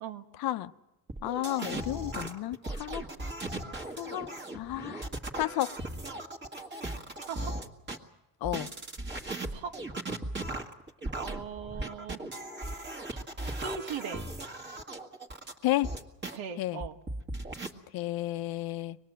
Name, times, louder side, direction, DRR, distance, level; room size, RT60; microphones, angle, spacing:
voice 1, 0.4-0.7 1.2-3.0 4.0-5.1 5.4-5.7 8.4-8.7 15.6-15.9 16.6-16.8 17.9-19.0, left 15 dB, 55° left, 12 dB, 0.8 m, -32 dB
sound 1, 1.1-8.0 8.4-16.4 16.8-17.7, right 2 dB, 25° right, 1.8 m, -37 dB
voice 2, 7.3-7.6 9.5-9.8 11.1-12.2 13.1-13.2 13.6-14.2 16.3-17.0, right 6 dB, 85° right, 7 dB, 1.6 m, -39 dB
25.0 x 20.0 x 7.6 m, 0.99 s
cardioid pair, 145°, 43 cm